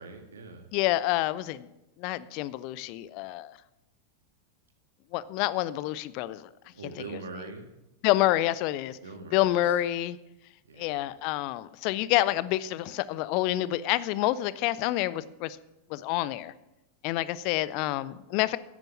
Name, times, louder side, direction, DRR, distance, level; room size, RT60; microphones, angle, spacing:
voice 1, 0.0-0.7 6.7-7.7 9.0-9.8 10.6-11.1, right 3 dB, 65° right, 5 dB, 1.9 m, -43 dB
voice 2, 0.7-1.7 2.0-3.6 5.1-6.5 8.0-9.0 9.3-10.2 10.8-15.6 15.9-16.5 17.0-18.6, left 15 dB, 45° left, 18 dB, 0.5 m, -28 dB
11.0 x 9.1 x 7.1 m, 0.96 s
figure-of-eight pair, 90°, 0 cm